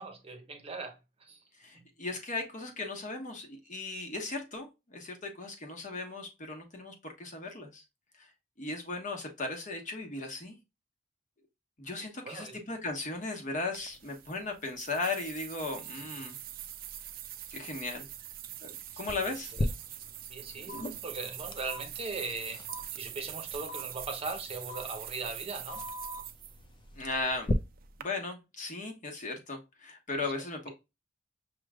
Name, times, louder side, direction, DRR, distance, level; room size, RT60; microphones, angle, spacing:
voice 1, 0.0-1.4 1.7-1.8 12.2-12.6 19.0-19.2 20.3-22.6 22.9-25.9 30.2-30.3, right 3 dB, 35° right, 0.8 m, -39 dB
voice 2, 1.6-7.8 8.2-8.3 8.6-10.6 11.8-16.4 17.5-18.1 18.6-19.5 26.9-27.5 28.0-30.7, left 3 dB, 45° left, 1.1 m, -37 dB
sound 1, 13.7-28.0, right 11 dB, 50° right, 0.5 m, -44 dB
sound 2, 19.1-27.5, left 2 dB, 25° left, 0.4 m, -40 dB
sound 3, 20.7-20.8 21.7-21.8 22.7-22.8 23.7-23.8 24.7-24.8 25.7-26.2, left 2 dB, 90° left, 1.2 m, -42 dB
6.0 x 3.1 x 2.3 m
head